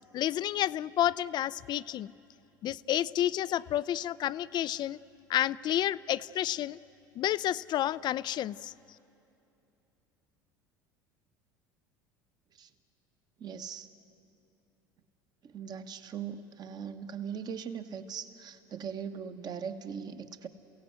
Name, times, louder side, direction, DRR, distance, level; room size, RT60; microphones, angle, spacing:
voice 1, 0.1-2.1 2.6-5.0 5.3-6.8 7.2-8.7, left 12 dB, 40° left, 19 dB, 0.5 m, -30 dB
voice 2, 13.4-13.9 15.4-20.5, right 7 dB, 40° right, 8 dB, 1.4 m, -40 dB
28.5 x 17.0 x 8.2 m, 2.8 s
hypercardioid pair, 70°, 11 cm